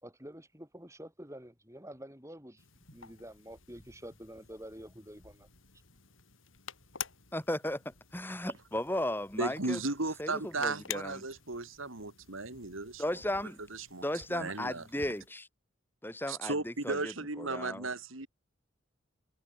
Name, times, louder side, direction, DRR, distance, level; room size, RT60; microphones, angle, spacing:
voice 1, 0.0-2.6 2.9-5.5, equal, 15° right, 5.1 m, -48 dB
sound 1, 2.6-15.3, left 9 dB, 85° left, 5.6 m, -50 dB
voice 2, 7.3-9.8 10.2-11.2 13.0-13.6 14.0-15.5 16.0-17.9, left 1 dB, 10° left, 6.5 m, -35 dB
voice 3, 9.4-13.0 13.7-14.0 14.3-14.8 16.3-18.3, right 3 dB, 90° right, 3.1 m, -35 dB
head